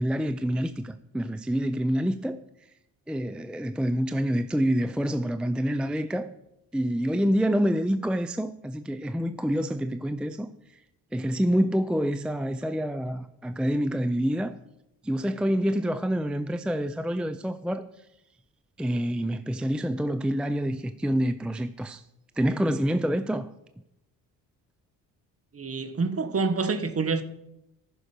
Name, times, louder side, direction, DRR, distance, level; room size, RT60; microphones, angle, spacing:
voice 1, 0.0-2.4 3.1-6.3 6.7-10.5 11.1-14.6 15.0-17.8 18.8-22.0 22.4-23.5, equal, 5° right, 0.5 m, -27 dB
voice 2, 25.5-27.2, right 4 dB, 35° right, 1.4 m, -27 dB
14.5 x 6.4 x 5.1 m
supercardioid pair, 60°, 39 cm